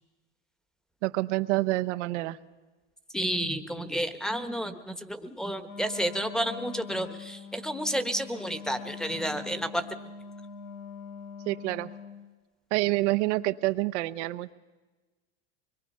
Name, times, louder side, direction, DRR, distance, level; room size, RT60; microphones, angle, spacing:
voice 1, 1.0-2.4 11.5-11.9 12.7-14.5, right 19 dB, 70° right, 13 dB, 0.9 m, -27 dB
voice 2, 3.1-9.9, equal, ahead, 10 dB, 1.2 m, -31 dB
Wind instrument woodwind instrument, 5.6-12.3, left 6 dB, 75° left, 3.8 m, -43 dB
24.0 x 22.5 x 5.6 m, 1.2 s
supercardioid pair, 115°, 37 cm